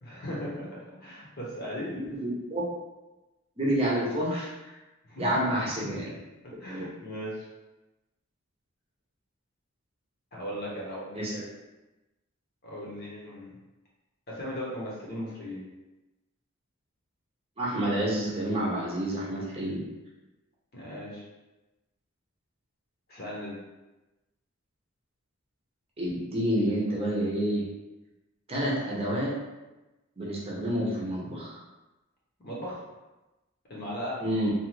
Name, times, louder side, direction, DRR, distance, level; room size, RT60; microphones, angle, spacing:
voice 1, 0.0-2.0 5.1-5.4 5.8-6.1 6.6-7.5 10.3-11.4 12.6-13.5 14.3-15.6 20.7-21.2 23.1-23.6 32.4-32.8 33.7-34.2, equal, 50° left, -5 dB, 0.9 m, -37 dB
voice 2, 1.9-2.6 3.6-4.5 5.2-6.2 6.7-6.8 11.2-11.4 17.6-19.8 26.0-27.6 28.5-29.4 30.2-31.6 34.2-34.5, right 1 dB, 30° right, -5 dB, 0.7 m, -29 dB
2.7 x 2.4 x 3.0 m, 1.0 s
head